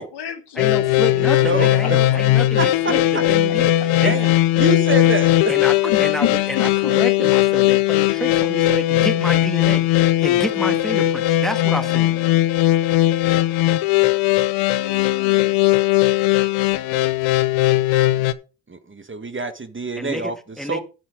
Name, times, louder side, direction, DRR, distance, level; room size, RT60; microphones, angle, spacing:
voice 1, 0.0-0.7 1.8-2.2 2.5-3.0 3.8-3.9 5.9-6.9 11.7-12.4 14.8-15.6 18.1-18.2, left 9 dB, 60° left, 1.7 m, -30 dB
voice 2, 0.5-4.2 5.5-5.7 6.0-12.1 20.0-20.8, equal, ahead, 2.1 m, -29 dB
sound 1, 0.6-18.3, left 15 dB, 90° left, 0.7 m, -18 dB
voice 3, 1.2-2.0 2.6-2.7 3.1-3.2 4.0-4.3 4.6-5.5 17.7-17.8 18.7-20.3 20.7-20.8, right 3 dB, 25° right, 1.6 m, -26 dB
9.4 x 7.7 x 5.0 m
supercardioid pair, 60°, 45 cm